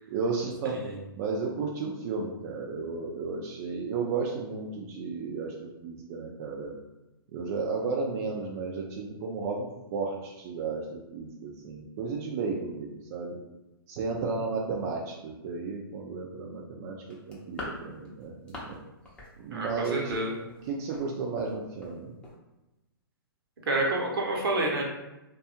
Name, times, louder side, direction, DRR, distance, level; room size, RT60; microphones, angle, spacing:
voice 1, 0.1-0.8 1.2-6.8 7.3-13.4 13.9-18.8 19.4-20.1 20.7-22.1, right 4 dB, 40° right, -1 dB, 0.4 m, -33 dB
voice 2, 0.6-1.0 19.5-20.3 23.7-24.8, right 2 dB, 75° right, -1 dB, 0.9 m, -28 dB
sound 1, 17.1-18.8 19.0-19.3 19.6-21.1 21.4-21.5 21.8-22.0 22.2-22.4, left 1 dB, 10° left, 0.6 m, -42 dB
2.6 x 2.3 x 2.7 m, 0.99 s
hypercardioid pair, 125°, 12 cm